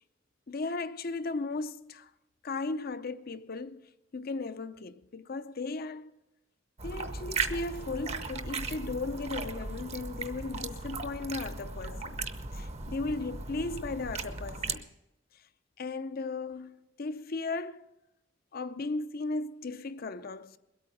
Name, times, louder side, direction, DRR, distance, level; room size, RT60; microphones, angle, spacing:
voice 1, 0.5-2.1 2.4-3.9 4.1-6.1 6.8-12.2 12.5-14.8 15.8-17.9 18.5-20.6, left 3 dB, 50° left, 0.6 m, -36 dB
sound 1, 6.8-14.8, right 3 dB, 35° right, 0.8 m, -37 dB
21.5 x 8.8 x 5.2 m
head